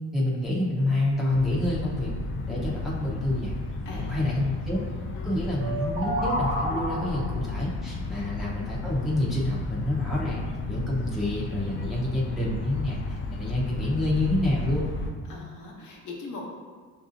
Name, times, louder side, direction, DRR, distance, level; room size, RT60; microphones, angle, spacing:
voice 1, 0.1-2.1 2.5-3.5 3.9-4.8 5.2-10.4 10.7-13.0 13.3-14.9, left 1 dB, ahead, -6 dB, 0.7 m, -28 dB
sound 1, 1.3-15.1, left 2 dB, 35° left, 0.4 m, -33 dB
voice 2, 3.8-4.3 5.2-5.4 8.1-8.3 15.3-16.5, left 3 dB, 60° left, -2 dB, 0.9 m, -40 dB
sound 2, 5.6-7.4, right 1 dB, 45° right, 1.3 m, -30 dB
5.8 x 2.7 x 2.5 m, 1.5 s
cardioid pair, 120°, 34 cm